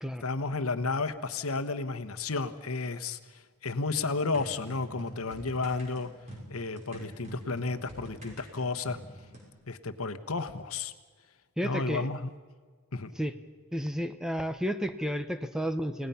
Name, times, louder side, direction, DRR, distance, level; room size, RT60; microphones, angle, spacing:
voice 1, 0.2-6.1 6.5-9.0 9.7-10.9 11.6-12.3 12.9-13.1, left 3 dB, 70° left, 9 dB, 1.2 m, -32 dB
sound 1, 4.3-9.5, right 1 dB, 30° right, 6.2 m, -46 dB
voice 2, 11.6-12.1 13.2-13.4 13.7-16.1, equal, 5° right, 9 dB, 0.9 m, -32 dB
30.0 x 18.5 x 5.7 m, 1.5 s
head